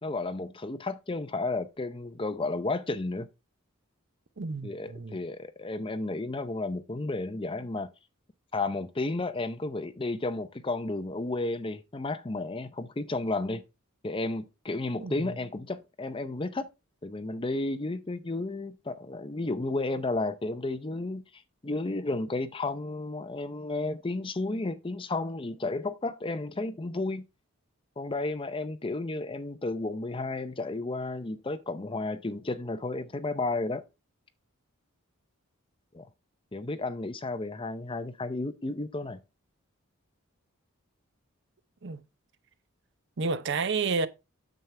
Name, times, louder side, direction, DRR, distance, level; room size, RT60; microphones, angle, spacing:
voice 1, 0.0-3.3 4.6-7.9 8.5-13.6 14.0-16.7 17.0-27.2 28.0-33.8 35.9-36.1 36.5-39.2, left 2 dB, 25° left, 0.6 m, -32 dB
voice 2, 4.4-5.2 15.0-15.3 41.8-42.0 43.2-44.1, right 4 dB, 55° right, 0.6 m, -30 dB
9.1 x 7.2 x 3.3 m
head